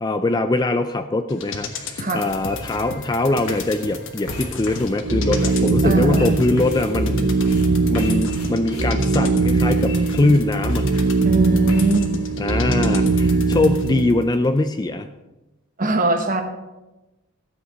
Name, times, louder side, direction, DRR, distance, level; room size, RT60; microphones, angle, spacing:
voice 1, 0.0-7.3 7.9-10.9 12.4-15.1, left 2 dB, 20° left, 8 dB, 0.4 m, -22 dB
sound 1, 1.3-14.1 14.4-14.5, left 3 dB, 55° left, 1.3 m, -33 dB
voice 2, 2.0-2.3 5.8-6.4 11.2-12.1 15.8-16.4, right 2 dB, 35° right, 6 dB, 1.2 m, -21 dB
sound 2, 2.3-11.9, left 2 dB, 80° left, 2.3 m, -40 dB
sound 3, 5.0-14.3, right 3 dB, 65° right, 1.0 m, -21 dB
13.0 x 8.0 x 5.0 m, 1.1 s
head